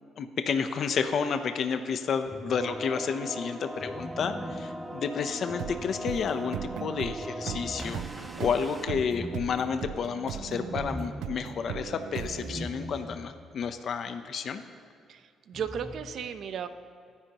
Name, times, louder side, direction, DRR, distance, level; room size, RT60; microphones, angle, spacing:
voice 1, 0.2-14.6, left 6 dB, 60° left, 8 dB, 0.8 m, -31 dB
sound 1, 2.2-3.0 3.8-6.5 7.2-13.4 13.7-13.8 15.5-15.9, equal, ahead, 1.3 m, -42 dB
sound 2, 2.5-8.9, equal, 20° right, 1.2 m, -40 dB
sound 3, 5.6-13.2, right 11 dB, 85° right, 0.3 m, -39 dB
voice 2, 15.5-16.7, right 7 dB, 65° right, 9 dB, 0.8 m, -34 dB
23.0 x 10.0 x 3.0 m, 2.3 s
cardioid pair, 90°, 0 cm